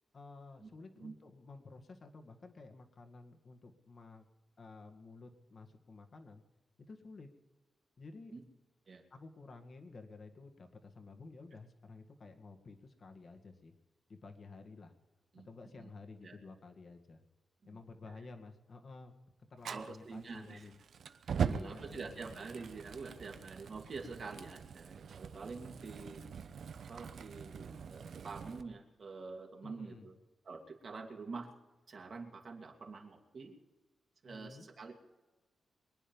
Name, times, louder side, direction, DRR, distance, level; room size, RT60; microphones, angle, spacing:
voice 1, 0.1-4.2 4.6-6.4 6.9-7.3 8.0-8.3 9.1-13.8 14.1-14.9 15.5-17.2 17.6-19.1 19.5-20.8 21.4-22.5 29.6-30.1 34.3-34.7, left 3 dB, 45° left, 5 dB, 2.0 m, -52 dB
Fire, 19.6-28.6, right 7 dB, 70° right, 0.8 m, -42 dB
voice 2, 19.7-20.7 21.5-26.2 26.9-30.1 30.4-31.5 31.9-33.6 34.2-35.0, right 4 dB, 50° right, 2 dB, 2.7 m, -47 dB
23.5 x 10.0 x 5.5 m, 1.2 s
wide cardioid pair, 120°, 0 cm